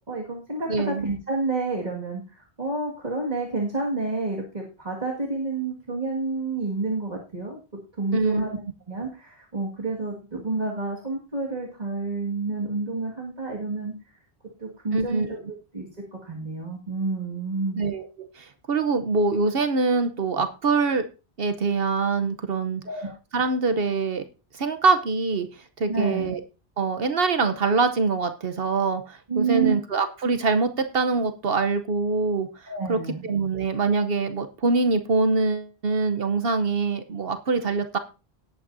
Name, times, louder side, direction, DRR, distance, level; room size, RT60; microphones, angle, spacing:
voice 1, 0.1-7.6 8.0-8.6 8.9-13.9 14.6-15.9 16.2-17.8 22.8-23.1 25.9-26.3 29.3-29.7 32.7-33.3, right 3 dB, 40° right, -2 dB, 2.1 m, -29 dB
voice 2, 0.7-1.0 8.1-8.5 14.9-15.4 17.8-21.0 21.4-22.8 23.3-24.2 24.5-25.5 25.8-26.4 26.8-32.5 32.9-38.0, right 4 dB, 65° right, 8 dB, 1.1 m, -24 dB
18.0 x 8.6 x 2.6 m, 0.32 s
omnidirectional pair, 1.1 m